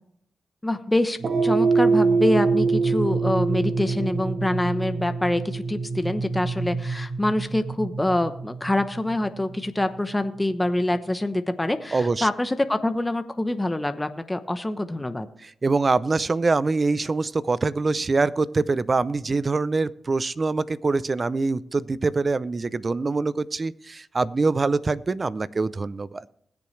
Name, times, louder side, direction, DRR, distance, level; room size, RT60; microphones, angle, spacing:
voice 1, 0.6-15.3, left 1 dB, 15° left, 9 dB, 0.9 m, -25 dB
sound 1, 1.2-9.7, right 4 dB, 65° right, 1.4 m, -25 dB
voice 2, 11.9-12.3 15.6-26.2, right 3 dB, 45° right, 18 dB, 0.5 m, -24 dB
20.5 x 7.0 x 3.2 m, 0.71 s
cardioid pair, 50°, 0 cm